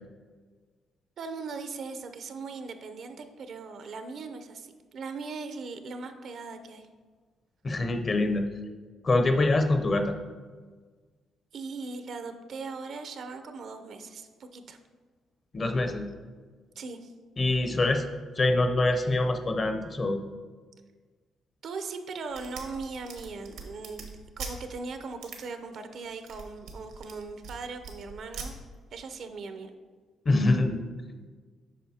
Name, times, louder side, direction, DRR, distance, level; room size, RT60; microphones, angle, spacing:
voice 1, 1.2-6.9 11.5-14.8 16.8-17.1 21.6-24.1 24.4-28.5 28.9-29.7, right 4 dB, 60° right, 8 dB, 0.6 m, -39 dB
voice 2, 7.6-8.5 9.0-10.2 15.5-16.1 17.4-18.0 18.4-20.2 30.3-30.8, left 2 dB, 35° left, 7 dB, 0.7 m, -25 dB
sound 1, 22.3-24.5 25.2-25.4 26.0-27.6 27.8-28.5, right 5 dB, 85° right, 1.1 m, -41 dB
8.4 x 5.7 x 2.8 m, 1.5 s
cardioid pair, 90°, 0 cm